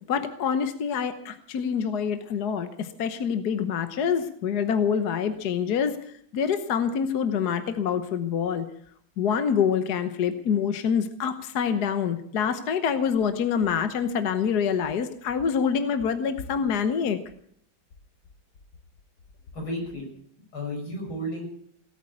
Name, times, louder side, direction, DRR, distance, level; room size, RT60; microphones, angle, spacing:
voice 1, 0.1-6.0 6.3-8.6 9.2-17.2, left 7 dB, 55° left, 9 dB, 1.4 m, -26 dB
voice 2, 19.5-20.1 20.4-21.5, equal, 80° left, 0 dB, 6.9 m, -33 dB
17.5 x 8.9 x 8.5 m, 0.66 s
omnidirectional pair, 2.2 m